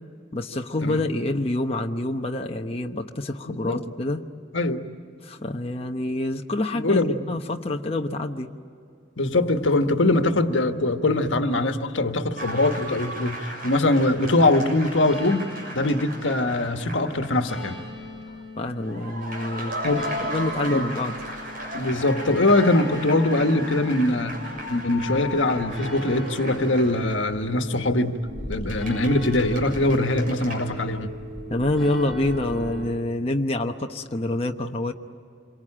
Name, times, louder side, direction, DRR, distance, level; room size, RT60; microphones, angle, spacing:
voice 1, 0.3-4.2 5.2-8.5 18.6-19.7 20.2-21.5 31.5-34.9, left 1 dB, 30° left, 3 dB, 1.0 m, -27 dB
voice 2, 3.5-3.8 4.5-4.9 6.7-7.2 9.2-17.8 19.8-20.1 20.7-20.9 21.7-24.4 24.7-28.2 28.5-31.2, left 2 dB, 90° left, 7 dB, 1.4 m, -22 dB
sound 1, 12.4-17.5 17.8-17.9 18.8-27.4 28.5-30.7, equal, 50° right, 6.9 m, -36 dB
sound 2, 15.0-32.9, left 1 dB, ahead, 6.6 m, -39 dB
27.5 x 23.5 x 8.8 m, 2.5 s
head